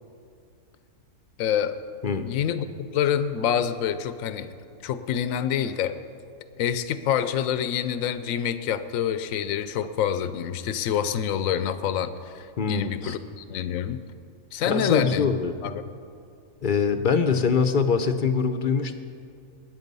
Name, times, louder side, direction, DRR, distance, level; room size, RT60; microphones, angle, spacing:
voice 1, 1.4-1.7 2.2-4.5 4.8-6.0 6.6-14.0 14.5-15.3 15.6-15.8, left 9 dB, 70° left, 11 dB, 1.1 m, -27 dB
voice 2, 12.6-13.2 14.7-15.5 16.6-18.9, left 5 dB, 45° left, 8 dB, 0.7 m, -23 dB
20.5 x 9.6 x 5.4 m, 2.4 s
omnidirectional pair, 1.5 m